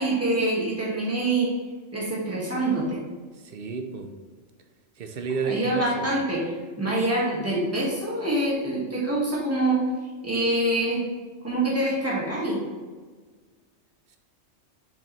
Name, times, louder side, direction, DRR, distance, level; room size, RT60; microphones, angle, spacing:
voice 1, 0.0-1.5 1.9-3.0 5.5-6.5 6.8-9.8 10.2-11.0 11.4-12.6, right 2 dB, 10° right, -6 dB, 1.9 m, -25 dB
voice 2, 3.4-4.1 5.0-6.1, right 5 dB, 50° right, 5 dB, 0.8 m, -31 dB
7.3 x 5.2 x 3.3 m, 1.5 s
omnidirectional pair, 1.4 m